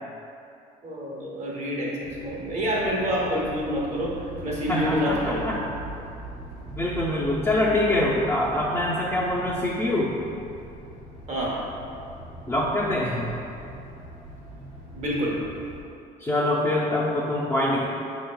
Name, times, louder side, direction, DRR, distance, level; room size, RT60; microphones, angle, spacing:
voice 1, 0.8-4.1 4.4-5.5 11.3-11.6 14.9-15.4, equal, 40° right, -4 dB, 1.1 m, -27 dB
sound 1, 2.0-15.8, right 1 dB, 85° right, 1.1 m, -41 dB
voice 2, 4.7-5.6 6.7-10.2 12.5-13.3 16.2-17.8, left 1 dB, 15° left, -7 dB, 0.5 m, -24 dB
5.2 x 3.8 x 2.2 m, 2.6 s
cardioid pair, 110°, 17 cm